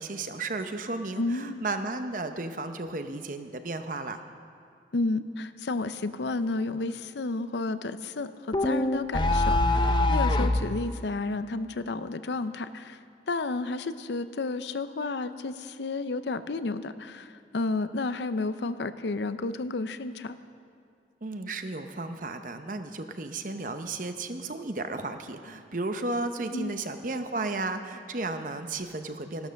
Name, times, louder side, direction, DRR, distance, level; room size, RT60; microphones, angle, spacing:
voice 1, 0.0-4.2 21.2-29.5, right 2 dB, 45° right, 8 dB, 0.8 m, -34 dB
voice 2, 1.2-1.6 4.9-13.0 13.3-20.4 26.5-26.7, left 3 dB, 70° left, 12 dB, 0.6 m, -31 dB
sound 1, 8.5-10.7, left 2 dB, 25° left, 0.5 m, -23 dB
13.5 x 12.0 x 6.4 m, 2.3 s
head